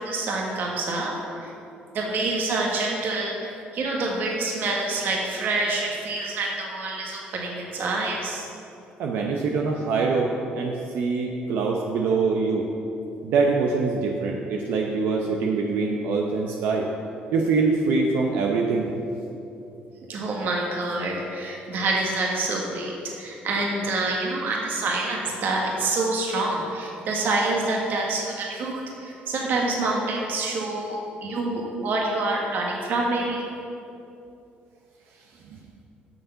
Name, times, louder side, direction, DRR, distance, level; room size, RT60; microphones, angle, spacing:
voice 1, 0.0-1.5 1.9-8.5 20.1-33.5, right 2 dB, 60° right, -1 dB, 1.7 m, -27 dB
voice 2, 9.0-12.7 13.2-16.9 17.3-18.9, right 4 dB, 75° right, 1 dB, 0.8 m, -24 dB
10.5 x 6.9 x 5.7 m, 2.8 s
cardioid pair, 100°, 4 cm